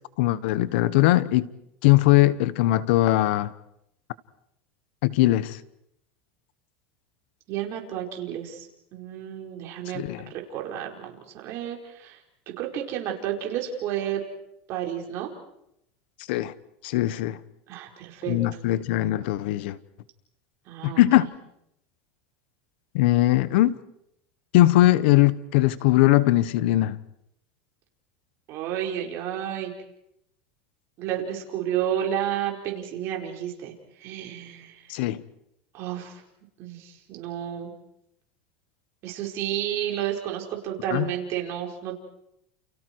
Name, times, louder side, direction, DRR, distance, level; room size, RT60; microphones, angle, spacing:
voice 1, 0.2-1.5 1.8-3.5 5.0-5.6 9.9-10.2 16.3-16.5 16.8-17.4 18.3-19.8 20.8-21.3 22.9-23.8 24.5-27.0 34.9-35.2 40.9-41.1, left 16 dB, 75° left, 1.1 m, -20 dB
voice 2, 7.5-8.7 8.9-10.0 10.5-12.2 12.6-14.2 14.7-15.3 17.7-18.4 20.7-21.0 28.5-29.7 31.0-33.7 34.0-35.0 35.7-36.2 36.6-37.7 39.0-41.9, right 10 dB, 50° right, 4.9 m, -31 dB
29.5 x 29.5 x 4.7 m
supercardioid pair, 130°, 6 cm